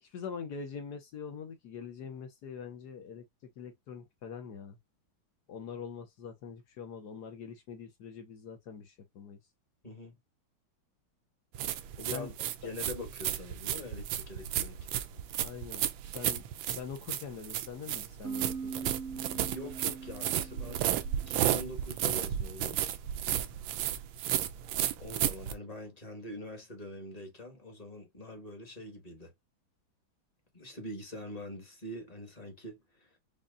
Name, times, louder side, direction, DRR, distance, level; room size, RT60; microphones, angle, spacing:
voice 1, 0.0-4.8 5.5-9.4 12.1-12.3 15.4-15.8 16.1-18.9, left 6 dB, 60° left, 1.3 m, -44 dB
voice 2, 9.8-10.1 12.0-12.3 12.6-14.9 19.3-20.9 21.1-22.8 25.0-29.3 30.5-33.2, left 1 dB, 20° left, 1.2 m, -44 dB
sound 1, 11.5-25.5, right 11 dB, 80° right, 1.3 m, -33 dB
sound 2, 18.2-21.8, right 5 dB, 55° right, 1.0 m, -42 dB
5.4 x 2.3 x 2.4 m
omnidirectional pair, 2.2 m